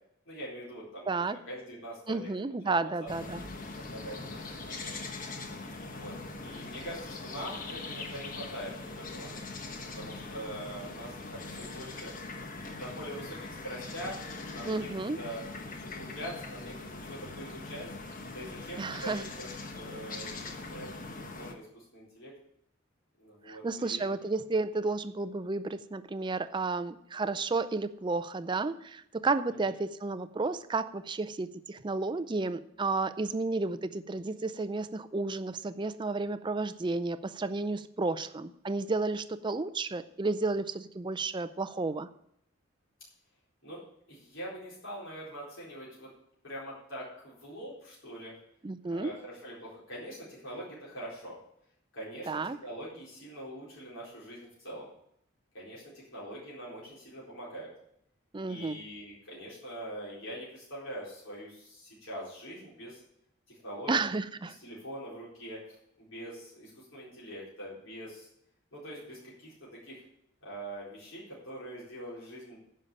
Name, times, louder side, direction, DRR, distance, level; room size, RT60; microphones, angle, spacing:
voice 1, 0.3-2.3 2.6-3.1 3.8-4.9 5.8-9.3 9.9-12.1 12.5-14.9 15.1-15.4 15.8-17.9 18.3-22.3 23.2-24.1 29.6-29.7 43.6-43.8 44.1-46.1 46.4-48.3 48.8-51.4 51.9-54.9 55.5-57.7 58.4-63.0 63.5-63.9 64.5-68.3 68.7-70.0 70.4-72.6, equal, 65° left, -7 dB, 4.3 m, -43 dB
voice 2, 1.1-1.4 2.1-3.4 14.7-15.2 18.8-19.2 23.5-42.1 48.6-49.1 52.3-52.6 58.3-58.8 63.9-64.5, right 3 dB, 25° right, 12 dB, 0.4 m, -32 dB
sound 1, 3.1-21.5, left 3 dB, 40° left, 1.2 m, -42 dB
10.5 x 5.6 x 8.5 m, 0.73 s
head